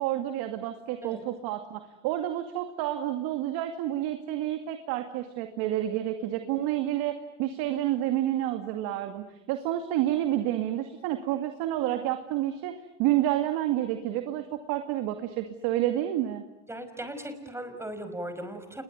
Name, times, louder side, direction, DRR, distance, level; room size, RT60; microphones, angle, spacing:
voice 1, 0.0-16.4, right 13 dB, 70° right, 7 dB, 2.4 m, -29 dB
voice 2, 16.7-18.8, right 1 dB, 5° right, 8 dB, 5.5 m, -38 dB
28.0 x 21.5 x 9.3 m, 0.88 s
supercardioid pair, 100°, 37 cm